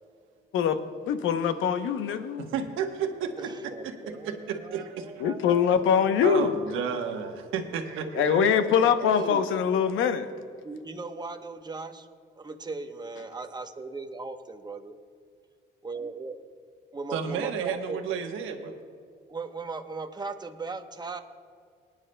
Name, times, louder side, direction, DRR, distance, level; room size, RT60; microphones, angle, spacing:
voice 1, 1.1-2.5 5.2-6.5 8.1-10.3, left 7 dB, 80° left, 10 dB, 0.8 m, -23 dB
voice 2, 2.4-3.9 4.2-5.1 6.2-8.7 17.1-18.7, right 7 dB, 90° right, 5 dB, 1.1 m, -32 dB
voice 3, 3.3-7.6 8.1-8.3 9.0-9.5 10.6-12.1 12.3-14.9 15.8-16.4 16.9-18.0 18.5-18.8 19.3-21.2, right 3 dB, 20° right, 6 dB, 0.9 m, -39 dB
23.5 x 10.0 x 2.2 m, 2.2 s
cardioid pair, 90°, 20 cm